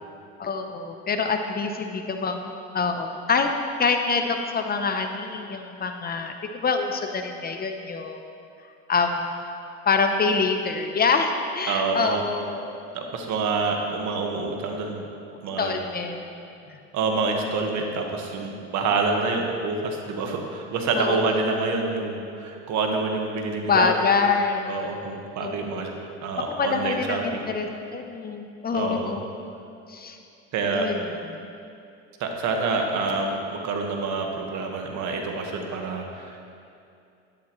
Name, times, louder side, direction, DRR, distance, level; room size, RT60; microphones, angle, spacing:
voice 1, 0.4-2.4 2.7-3.5 3.8-8.2 8.9-9.3 9.9-12.8 15.6-16.2 16.7-16.8 21.0-21.6 23.6-24.9 25.4-25.8 26.5-29.2 29.9-30.2 30.7-31.0 31.3-31.5, left 4 dB, 30° left, 5 dB, 0.7 m, -26 dB
voice 2, 11.7-12.2 12.9-15.1 15.4-15.7 16.9-23.9 24.7-25.9 26.2-27.5 28.7-29.1 30.5-30.9 32.2-36.4, right 3 dB, 55° right, 2 dB, 1.6 m, -27 dB
12.5 x 11.5 x 3.2 m, 2.6 s
supercardioid pair, 105°, 34 cm